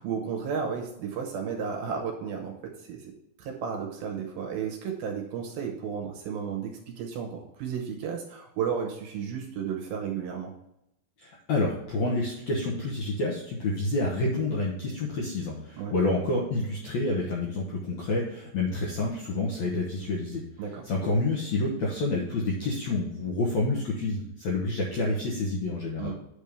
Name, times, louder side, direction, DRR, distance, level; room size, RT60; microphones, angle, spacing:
voice 1, 0.0-3.1 3.4-10.5 15.8-15.9 20.6-20.8 26.0-26.1, right 7 dB, 70° right, 2 dB, 2.5 m, -33 dB
voice 2, 11.2-20.4 20.8-26.1, left 2 dB, 75° left, -3 dB, 1.6 m, -28 dB
8.5 x 3.6 x 6.7 m, 0.82 s
omnidirectional pair, 4.9 m